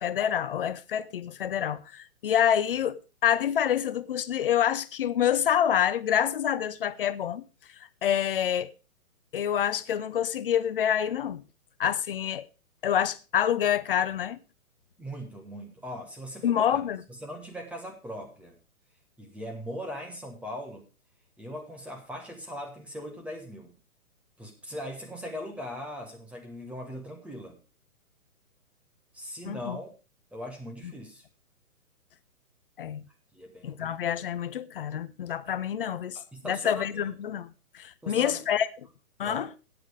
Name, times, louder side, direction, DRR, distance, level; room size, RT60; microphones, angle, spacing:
voice 1, 0.0-7.4 8.0-8.7 9.3-11.4 11.8-12.5 12.8-14.4 16.4-17.0 29.4-29.8 30.8-30.9 32.8-33.0 33.6-36.2 36.4-38.7 39.2-39.5, left 9 dB, 40° left, 0.7 m, -27 dB
voice 2, 15.0-16.8 17.1-18.5 19.2-20.9 21.4-23.7 24.4-27.6 29.1-29.9 30.3-31.2 33.3-33.9 36.1-37.1 38.0-38.4 39.2-39.5, equal, 5° right, 1.3 m, -40 dB
15.5 x 8.7 x 3.4 m
figure-of-eight pair, 130°, 44 cm